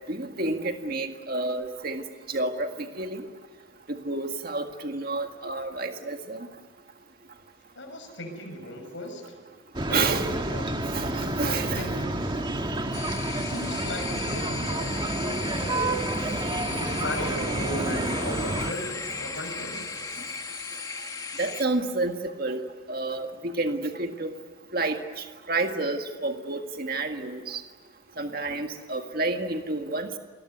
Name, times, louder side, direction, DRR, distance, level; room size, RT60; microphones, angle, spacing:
voice 1, 0.1-2.0 2.3-2.7 3.0-3.2 3.9-6.5 9.9-10.4 10.9-11.9 21.4-24.3 24.7-27.6 28.2-30.2, right 2 dB, 45° right, 5 dB, 1.8 m, -30 dB
voice 2, 7.7-9.3 9.9-10.2 10.5-11.0 11.5-12.4 13.0-15.7 16.6-19.9, left 1 dB, 65° left, 3 dB, 6.6 m, -37 dB
sound 1, 9.7-18.7, right 1 dB, 20° right, 1.6 m, -29 dB
sound 2, 12.9-21.7, left 4 dB, 15° left, 1.4 m, -36 dB
sound 3, 15.5-17.8 18.2-20.5, right 1 dB, ahead, 3.8 m, -44 dB
27.0 x 21.5 x 9.5 m, 1.5 s
head